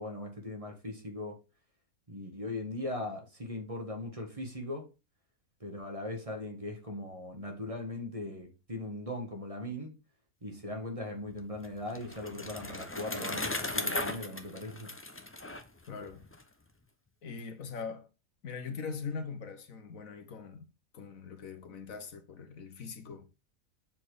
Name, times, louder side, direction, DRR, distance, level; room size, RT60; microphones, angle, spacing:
voice 1, 0.0-1.4 2.1-4.9 5.6-10.0 10.4-14.9, left 1 dB, 25° right, 1.7 m, -39 dB
Bicycle, 11.3-16.4, left 2 dB, 15° left, 0.6 m, -37 dB
voice 2, 15.9-16.2 17.2-18.1 18.4-20.6 20.9-23.3, left 5 dB, 70° left, 1.5 m, -41 dB
7.4 x 4.4 x 5.0 m
omnidirectional pair, 1.5 m